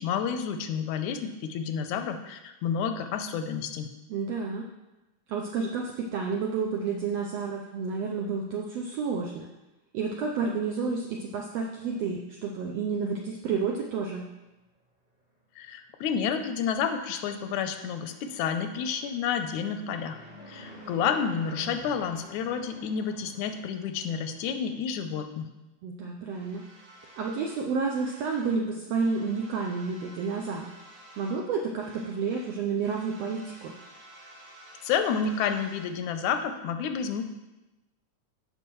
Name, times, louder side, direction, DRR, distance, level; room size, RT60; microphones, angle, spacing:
voice 1, 0.0-3.9 15.6-20.2 20.5-25.5 34.8-37.3, left 7 dB, 80° left, 8 dB, 1.8 m, -30 dB
voice 2, 4.1-4.7 5.3-9.5 9.9-14.3 25.8-26.7 27.2-30.7 31.2-33.7, right 5 dB, 85° right, 0 dB, 1.4 m, -30 dB
Fixed-wing aircraft airplane, 17.4-24.7, equal, 20° right, 1.3 m, -49 dB
sound 1, 26.3-28.6 28.9-31.5 31.7-36.0, right 1 dB, 55° right, 2.6 m, -52 dB
14.5 x 5.5 x 3.1 m, 1.0 s
omnidirectional pair, 3.7 m